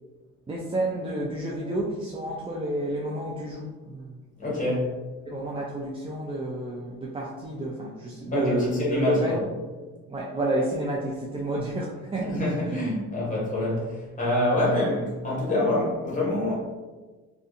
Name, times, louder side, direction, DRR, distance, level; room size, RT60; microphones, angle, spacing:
voice 1, 0.5-4.2 5.3-9.4 10.1-12.8, right 1 dB, 20° right, -3 dB, 0.3 m, -30 dB
voice 2, 4.4-4.9 8.3-9.4 12.2-16.5, left 1 dB, 25° left, -6 dB, 1.3 m, -26 dB
2.6 x 2.3 x 2.5 m, 1.3 s
cardioid pair, 90°, 30 cm